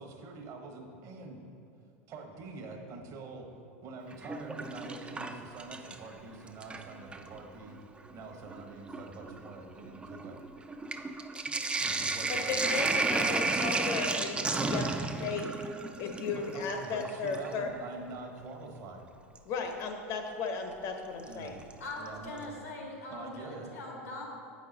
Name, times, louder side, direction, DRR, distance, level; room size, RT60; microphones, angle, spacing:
voice 1, 0.0-1.6 2.1-3.5 3.8-7.8 8.1-10.4 11.8-13.6 16.3-19.1 21.3-21.6 22.0-22.5 23.1-23.7, right 3 dB, 50° right, 3 dB, 1.1 m, -45 dB
Sink (filling or washing), 4.1-6.1 6.5-7.3 8.1-8.2 8.5-17.6 19.4-19.5 21.3-21.7 22.1-22.2 22.4-22.5, right 3 dB, 15° right, 0.4 m, -33 dB
voice 2, 12.3-15.5 16.0-17.7 19.4-21.6, left 4 dB, 50° left, 4 dB, 1.0 m, -35 dB
voice 3, 21.8-24.2, left 2 dB, 80° left, -1 dB, 1.7 m, -42 dB
8.4 x 5.5 x 4.0 m, 2.5 s
hypercardioid pair, 90°, 8 cm